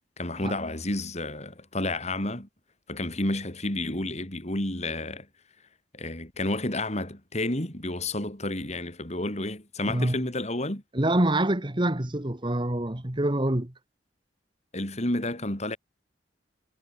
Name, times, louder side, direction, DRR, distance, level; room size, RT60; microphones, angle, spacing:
voice 1, 0.2-2.5 2.9-5.3 5.9-10.8 14.7-15.8, left 1 dB, 40° left, 5.1 m, -30 dB
voice 2, 9.9-10.2 10.9-13.7, right 1 dB, 25° right, 1.6 m, -26 dB
head